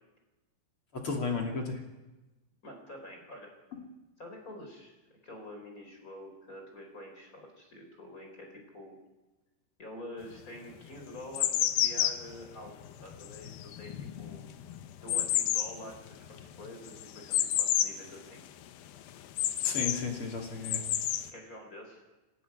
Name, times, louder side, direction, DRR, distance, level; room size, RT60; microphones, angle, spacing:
voice 1, 0.9-1.8 3.7-3.8 19.6-20.9, left 4 dB, 35° left, 2 dB, 2.7 m, -34 dB
voice 2, 2.6-3.5 4.2-9.0 9.8-13.5 13.7-14.4 15.0-18.4 21.3-22.0, left 1 dB, 20° left, 2 dB, 4.4 m, -47 dB
sound 1, 10.2-10.3 10.9-18.1 18.4-18.5 18.9-20.0 20.5-21.3, left 12 dB, 75° left, 2.3 m, -30 dB
27.0 x 12.5 x 9.7 m, 1.1 s
omnidirectional pair, 5.2 m